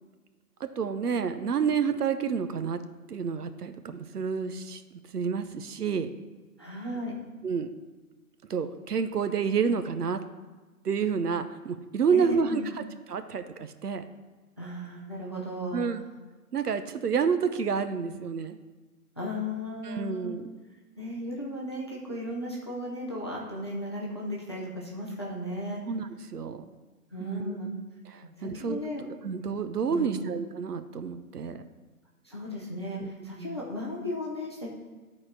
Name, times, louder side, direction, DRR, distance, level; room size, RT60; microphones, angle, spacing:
voice 1, 0.6-2.8 3.1-4.8 5.1-6.1 7.4-7.7 8.5-10.2 10.8-12.8 13.1-14.0 15.7-16.0 16.5-18.6 19.8-20.5 25.9-26.7 27.2-27.6 28.1-28.8 29.2-31.6 33.0-33.1 33.4-33.6, right 6 dB, 75° right, 10 dB, 0.8 m, -29 dB
voice 2, 6.6-7.2 12.1-12.7 14.6-15.8 19.2-20.3 21.0-25.8 27.1-27.7 28.4-29.0 29.9-30.3 32.2-34.7, equal, 20° left, -3 dB, 0.5 m, -35 dB
12.0 x 4.3 x 4.5 m, 1.2 s
hypercardioid pair, 160°, 47 cm